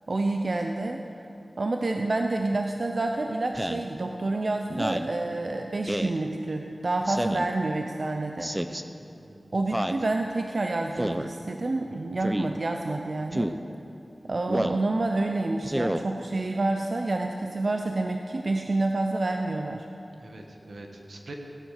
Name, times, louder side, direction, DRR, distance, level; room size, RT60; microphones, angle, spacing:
voice 1, 0.1-1.0 1.6-8.5 9.5-13.5 14.2-19.9, right 2 dB, 65° right, 3 dB, 0.8 m, -28 dB
Speech synthesizer, 3.5-3.9 4.7-5.1 5.9-6.2 7.1-7.5 8.4-8.8 9.7-10.0 11.0-11.3 12.2-12.5 13.3-13.6 14.5-14.8 15.6-16.0, right 1 dB, 15° right, 0.7 m, -29 dB
voice 2, 9.0-9.6 20.2-21.3, right 2 dB, 90° right, 2 dB, 1.7 m, -45 dB
17.0 x 10.5 x 6.6 m, 2.7 s
wide cardioid pair, 60°, 0 cm